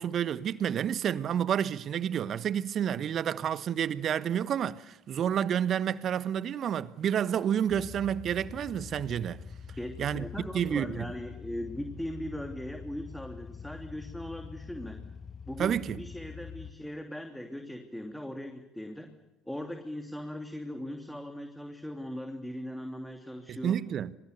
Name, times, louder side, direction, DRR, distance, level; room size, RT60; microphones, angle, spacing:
voice 1, 0.0-9.4 10.0-10.2 10.5-11.1 15.6-16.0 23.5-24.1, right 9 dB, 45° right, 1.1 m, -29 dB
sound 1, 7.7-16.7, left 6 dB, 35° left, 2.0 m, -45 dB
voice 2, 9.8-15.0 15.5-19.1 19.5-23.8, equal, 5° left, 2.9 m, -39 dB
27.5 x 25.0 x 6.8 m
hypercardioid pair, 60°, 0 cm